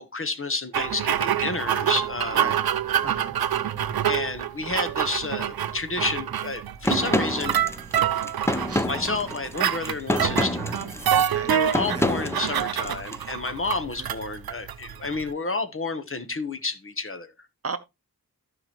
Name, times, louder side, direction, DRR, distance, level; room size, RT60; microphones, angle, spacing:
voice 1, 0.0-2.5 4.1-7.6 8.9-10.8 11.5-17.3, left 3 dB, 35° left, 1.0 m, -30 dB
sound 1, 0.7-15.3, right 10 dB, 90° right, 0.6 m, -27 dB
voice 2, 3.0-3.4 4.0-4.1 8.7-8.9 11.1-11.5 11.9-12.1 14.0-14.1 17.6-17.8, right 5 dB, 40° right, 0.7 m, -35 dB
sound 2, 6.8-13.2, left 1 dB, 5° left, 0.7 m, -28 dB
14.5 x 4.9 x 3.0 m
wide cardioid pair, 95°, 35 cm